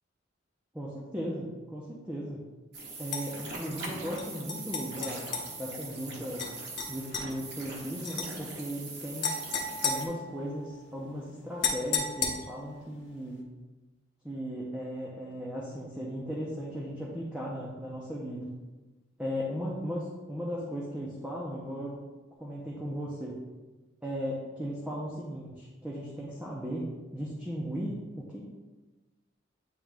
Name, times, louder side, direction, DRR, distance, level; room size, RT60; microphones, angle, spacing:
voice 1, 0.7-2.4 3.0-6.4 6.9-9.3 9.8-13.5 14.2-18.5 19.2-22.0 22.4-23.4 24.0-26.9 27.1-28.4, equal, 5° right, -5 dB, 0.7 m, -37 dB
sound 1, 2.7-10.1, right 3 dB, 55° right, 1.0 m, -42 dB
sound 2, 3.1-3.2 4.2-5.5 6.4-6.5 6.8-7.3 8.0-8.3 9.2-10.7 11.6-12.7, left 5 dB, 60° left, 0.9 m, -33 dB
8.7 x 3.0 x 3.5 m, 1.2 s
head